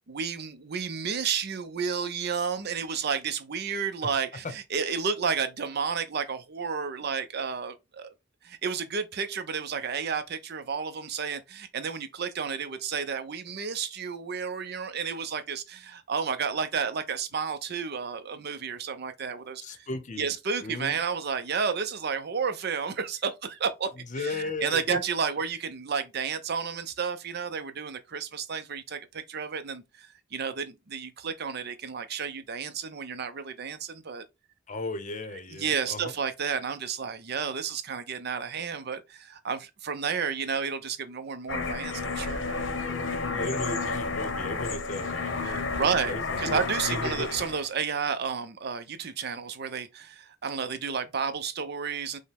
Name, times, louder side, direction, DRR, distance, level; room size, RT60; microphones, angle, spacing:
voice 1, 0.1-8.1 8.4-19.9 20.2-23.9 24.2-34.2 35.5-42.6 43.6-43.9 45.4-52.2, right 6 dB, 55° right, 0.6 m, -31 dB
voice 2, 19.6-20.3 20.6-21.0 24.1-25.0 34.7-36.1 43.2-46.6 46.9-47.3, left 2 dB, 40° left, 0.7 m, -36 dB
sound 1, 41.5-47.7, left 4 dB, 80° left, 0.9 m, -31 dB
5.4 x 2.1 x 3.4 m
head